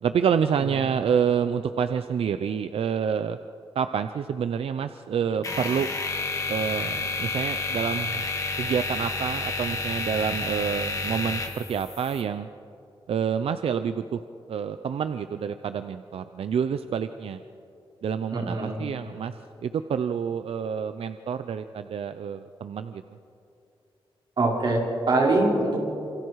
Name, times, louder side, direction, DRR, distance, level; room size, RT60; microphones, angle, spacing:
voice 1, 0.0-3.4 3.7-5.9 6.5-8.2 8.6-12.5 13.1-14.2 14.5-17.4 18.0-19.3 19.6-23.0, right 7 dB, 85° right, 10 dB, 0.7 m, -28 dB
sound 1, 5.4-12.2, left 3 dB, 35° left, 2.4 m, -30 dB
voice 2, 18.3-18.8 24.4-25.9, right 2 dB, 55° right, -3 dB, 5.8 m, -23 dB
28.5 x 27.5 x 4.8 m, 2.7 s
wide cardioid pair, 155°, 10 cm